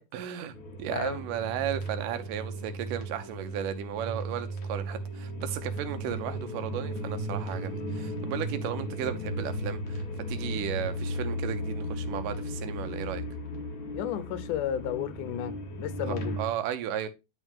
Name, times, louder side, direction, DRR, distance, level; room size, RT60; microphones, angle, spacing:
voice 1, 0.1-13.2 16.1-17.1, right 10 dB, 90° right, 2.5 m, -35 dB
sound 1, 0.5-16.5, equal, 50° left, 1.7 m, -35 dB
voice 2, 0.9-1.2 13.9-16.4, left 10 dB, 80° left, 2.2 m, -33 dB
10.5 x 3.7 x 3.5 m
omnidirectional pair, 3.7 m